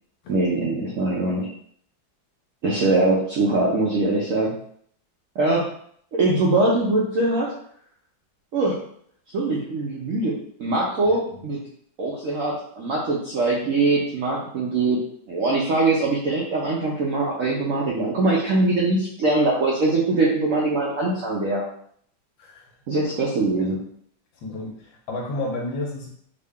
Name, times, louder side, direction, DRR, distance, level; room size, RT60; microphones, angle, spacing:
voice 1, 0.3-1.5 2.6-4.5 5.4-5.7 6.1-7.5 8.5-8.8 9.3-11.6 12.0-15.0 15.3-21.6 22.9-23.8, right 2 dB, 75° right, -4 dB, 0.7 m, -22 dB
voice 2, 11.0-11.5 22.4-22.7 23.6-23.8 24.3-26.1, left 2 dB, 80° left, -1 dB, 1.5 m, -32 dB
3.7 x 2.2 x 3.5 m, 0.64 s
omnidirectional pair, 2.1 m